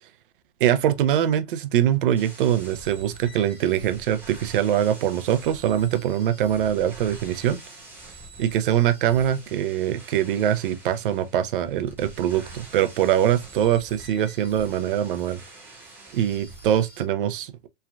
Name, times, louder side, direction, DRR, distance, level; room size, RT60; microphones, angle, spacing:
voice 1, 0.6-7.6 8.4-15.4 16.1-17.7, right 10 dB, 50° right, 0.4 m, -23 dB
sound 1, 2.2-17.0, right 2 dB, 5° right, 0.9 m, -45 dB
3.1 x 2.4 x 2.3 m
hypercardioid pair, 135°, 36 cm